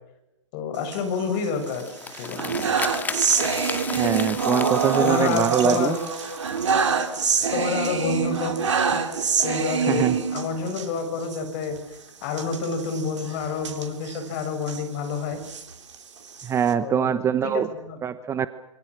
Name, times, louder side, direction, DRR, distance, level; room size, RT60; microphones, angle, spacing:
voice 1, 0.5-2.6 5.0-6.0 7.5-8.5 8.9-9.0 9.4-15.4 16.8-17.1 17.4-18.0, left 4 dB, 40° left, 7 dB, 7.1 m, -28 dB
sound 1, 0.8-1.7 2.1-10.9 11.2-11.4 11.6-11.8 12.3-14.8 15.3-16.7, right 5 dB, 65° right, 3.6 m, -26 dB
sound 2, 1.5-7.6, left 4 dB, 10° left, 2.1 m, -35 dB
voice 2, 3.9-5.9 9.9-10.2 16.4-17.7 18.0-18.5, right 8 dB, 15° right, 14 dB, 1.0 m, -23 dB
27.0 x 25.0 x 6.4 m, 0.93 s
figure-of-eight pair, 115°, 16 cm